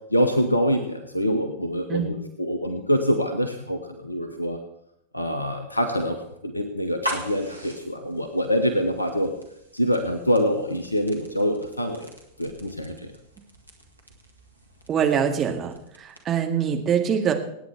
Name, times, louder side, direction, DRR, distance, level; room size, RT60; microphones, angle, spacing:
voice 1, 0.1-4.6 5.1-9.3 9.7-12.1 12.4-13.1, equal, 85° left, 8 dB, 1.1 m, -25 dB
sound 1, 6.8-16.5, equal, 85° right, 2.0 m, -41 dB
voice 2, 14.9-15.7 16.0-17.3, right 8 dB, 25° right, 4 dB, 1.9 m, -23 dB
26.5 x 9.2 x 3.5 m, 0.79 s
figure-of-eight pair, 90°, 0 cm